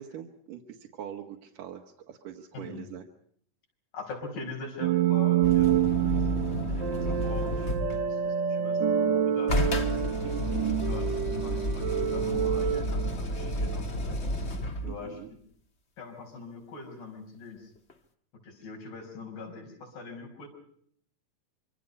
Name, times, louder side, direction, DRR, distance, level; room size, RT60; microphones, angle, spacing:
voice 1, 0.0-3.0 10.2-10.8 14.9-15.3, right 10 dB, 75° right, 1 dB, 3.1 m, -43 dB
voice 2, 2.5-2.9 3.9-6.2 6.6-9.7 10.4-14.2 14.8-15.4 16.0-17.7 18.4-20.5, left 4 dB, 85° left, 1 dB, 6.9 m, -43 dB
sound 1, 4.8-13.8, right 9 dB, 45° right, 1.5 m, -27 dB
sound 2, 5.4-8.1 9.5-15.1 17.9-18.0, left 1 dB, 35° left, 1.0 m, -31 dB
26.5 x 24.5 x 5.4 m, 0.64 s
omnidirectional pair, 3.8 m